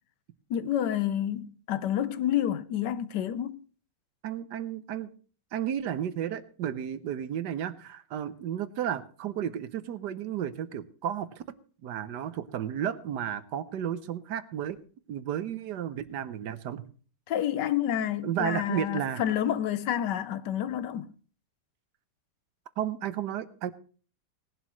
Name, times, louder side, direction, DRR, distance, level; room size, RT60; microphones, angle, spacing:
voice 1, 0.5-3.6 17.3-21.1, left 11 dB, 75° left, 1.3 m, -29 dB
voice 2, 4.2-5.1 5.5-11.4 11.8-14.8 15.1-16.8 18.2-19.2 22.8-23.7, right 10 dB, 75° right, 1.3 m, -33 dB
18.0 x 11.0 x 3.1 m
omnidirectional pair, 1.9 m